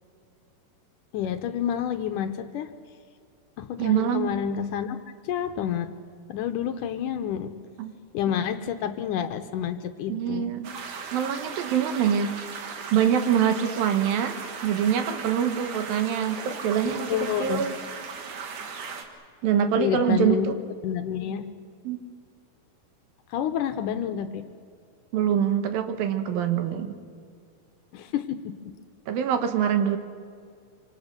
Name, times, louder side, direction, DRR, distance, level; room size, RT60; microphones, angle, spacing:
voice 1, 1.1-2.7 3.6-5.0 5.2-5.9 6.3-7.5 8.1-10.5 16.9-17.7 19.8-20.5 20.8-21.5 23.3-24.4 27.9-28.4, left 9 dB, 75° left, 8 dB, 2.2 m, -29 dB
voice 2, 3.8-4.3 7.8-7.9 8.3-8.5 10.1-10.8 11.1-12.4 12.9-14.4 14.6-17.8 19.4-20.6 21.8-22.0 25.1-27.0 29.1-30.0, right 8 dB, 80° right, 8 dB, 3.0 m, -24 dB
sound 1, 10.6-19.0, right 5 dB, 60° right, 3.1 m, -37 dB
26.0 x 25.5 x 6.6 m, 2.3 s
omnidirectional pair, 4.2 m